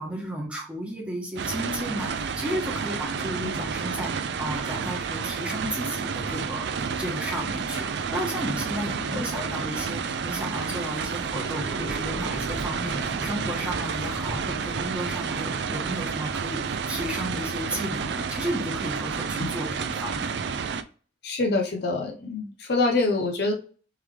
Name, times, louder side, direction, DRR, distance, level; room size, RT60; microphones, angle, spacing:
voice 1, 0.0-20.3, equal, 5° right, -2 dB, 1.1 m, -33 dB
sound 1, 1.4-20.8, right 6 dB, 70° right, 0.4 m, -30 dB
sound 2, 11.3-16.5, equal, 40° left, 1.6 m, -40 dB
voice 2, 21.2-23.5, left 3 dB, 60° left, 1 dB, 0.6 m, -25 dB
3.6 x 3.1 x 3.3 m, 0.40 s
head